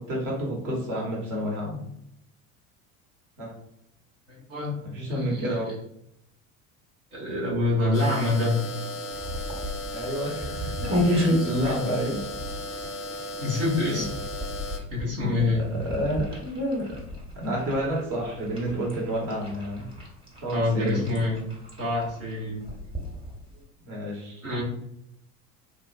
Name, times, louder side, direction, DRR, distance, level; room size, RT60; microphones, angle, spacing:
voice 1, 0.0-1.8 3.4-3.5 4.8-5.7 9.9-12.2 13.9-14.0 15.1-17.0 17.3-19.8 20.4-21.0 23.8-24.6, equal, 45° right, -3 dB, 1.1 m, -30 dB
voice 2, 4.3-4.8 5.1-5.6 7.1-8.6 11.6-11.7 13.4-14.1 14.9-15.8 20.5-21.4 21.8-22.6 24.4-24.6, left 2 dB, 75° right, -6 dB, 1.3 m, -26 dB
sound 1, 7.9-14.8, left 1 dB, 30° left, 0.5 m, -36 dB
sound 2, 9.1-23.6, equal, 10° right, 1.1 m, -33 dB
3.5 x 2.4 x 2.4 m, 0.75 s
figure-of-eight pair, 65°, 44 cm